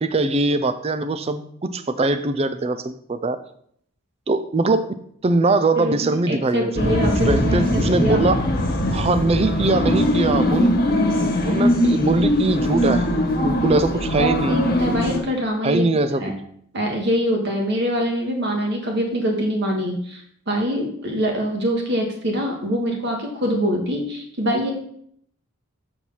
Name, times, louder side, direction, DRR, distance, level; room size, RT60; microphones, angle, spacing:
voice 1, 0.0-3.4 4.3-5.0 5.2-6.9 7.3-8.4 8.9-10.8 11.4-13.1 13.4-14.6 15.6-16.2, right 2 dB, 25° right, 11 dB, 0.4 m, -21 dB
voice 2, 5.8-8.3 14.2-15.9 16.2-16.4 16.7-24.7, equal, 50° right, 1 dB, 1.7 m, -24 dB
sound 1, 6.7-15.2, left 1 dB, 40° left, 1.3 m, -21 dB
7.0 x 4.6 x 5.6 m, 0.66 s
head